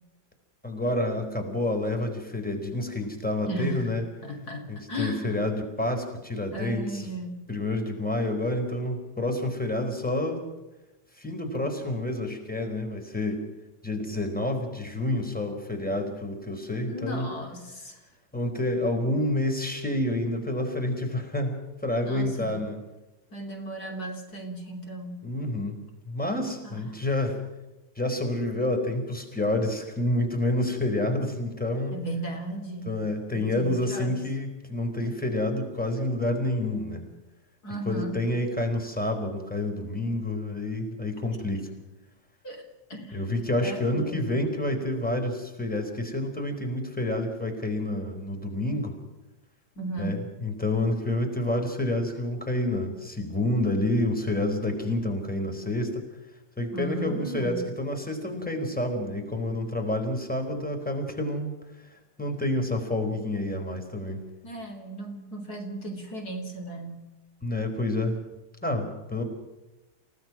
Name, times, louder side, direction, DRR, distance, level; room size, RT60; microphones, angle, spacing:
voice 1, 0.6-4.0 4.7-7.1 7.5-10.5 11.2-13.4 13.8-17.3 18.3-22.8 25.2-25.8 26.1-27.4 28.0-32.0 32.9-37.0 37.8-41.7 43.1-48.9 50.0-56.0 56.6-61.5 61.9-64.2 67.4-68.2 68.6-69.2, left 1 dB, 5° left, 4 dB, 4.3 m, -28 dB
voice 2, 3.5-3.9 4.2-5.4 6.5-7.5 16.9-18.0 22.0-22.6 23.3-25.3 26.6-27.0 31.9-34.1 37.6-38.3 42.4-43.2 43.6-44.2 49.8-50.3 56.7-57.7 64.4-67.1, right 1 dB, 60° left, 3 dB, 4.0 m, -36 dB
29.5 x 17.5 x 6.1 m, 1.0 s
omnidirectional pair, 1.8 m